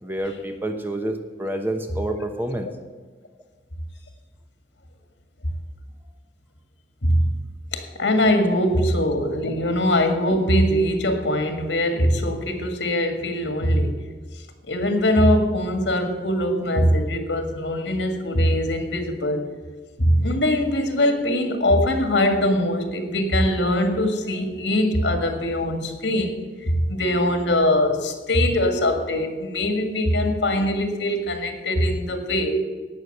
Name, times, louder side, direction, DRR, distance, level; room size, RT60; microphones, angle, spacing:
voice 1, 0.0-2.7 8.7-8.8 31.8-31.9, right 1 dB, 10° right, 5 dB, 1.0 m, -28 dB
voice 2, 7.7-14.0 14.7-19.5 20.0-26.4 26.7-32.6, left 1 dB, 85° left, 5 dB, 2.0 m, -22 dB
17.0 x 6.4 x 6.7 m, 1.4 s
head